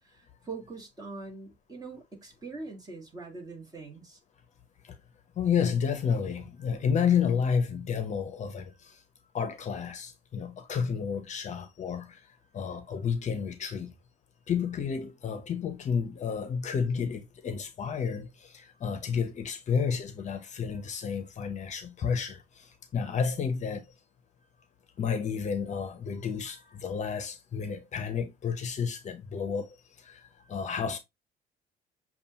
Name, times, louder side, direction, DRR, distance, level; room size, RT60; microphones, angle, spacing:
voice 1, 0.0-4.2, right 3 dB, 20° right, 1.6 m, -43 dB
voice 2, 5.4-9.0 9.3-12.2 12.5-13.9 14.5-23.9 25.0-30.2 30.5-31.0, left 6 dB, 45° left, 0.8 m, -31 dB
6.9 x 2.4 x 2.8 m
cardioid pair, 110°, 17 cm